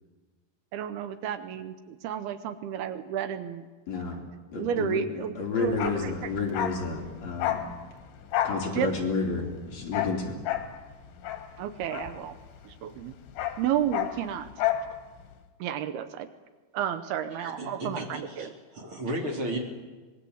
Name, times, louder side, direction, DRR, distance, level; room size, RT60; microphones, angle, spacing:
voice 1, 0.7-3.6 4.6-5.9 8.7-8.9 11.6-12.4 12.8-13.1 13.6-14.5 15.6-16.3 16.7-18.5, right 9 dB, 80° right, 10 dB, 2.8 m, -31 dB
voice 2, 3.9-4.2 4.5-7.6 8.4-10.4, left 4 dB, 45° left, 0 dB, 3.9 m, -31 dB
Bark, 5.7-12.7 13.0-14.9 15.2-15.3, left 11 dB, 75° left, 3.7 m, -32 dB
voice 3, 17.3-19.6, right 1 dB, 35° right, 1 dB, 3.5 m, -34 dB
25.0 x 21.0 x 8.0 m, 1.3 s
omnidirectional pair, 4.7 m